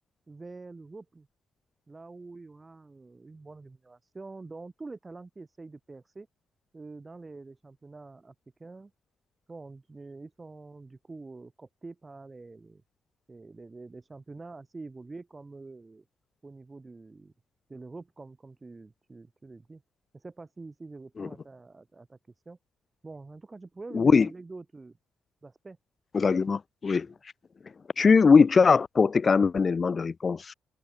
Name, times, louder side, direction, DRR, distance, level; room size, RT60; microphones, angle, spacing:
voice 1, 0.3-1.3 1.9-6.3 6.7-8.3 8.6-8.9 9.5-12.8 13.3-16.0 16.4-17.3 17.7-19.8 20.1-22.2 22.5-22.6 23.0-25.0 25.4-25.8, right 3 dB, 25° right, 6.3 m, -46 dB
voice 2, 23.9-24.3 26.1-27.1 28.0-30.5, left 5 dB, 35° left, 1.5 m, -21 dB
cardioid pair, 90°, 0 cm